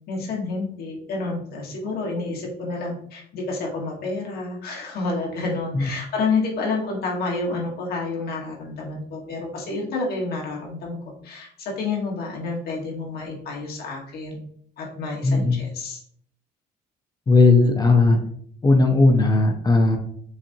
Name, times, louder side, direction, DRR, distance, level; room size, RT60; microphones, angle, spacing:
voice 1, 0.1-14.4 14.8-16.0, left 3 dB, 65° left, -1 dB, 1.6 m, -29 dB
voice 2, 15.2-15.6 17.3-18.2 18.6-20.0, left 3 dB, 25° left, 4 dB, 0.6 m, -17 dB
7.1 x 2.5 x 2.8 m, 0.62 s
cardioid pair, 110°, 17 cm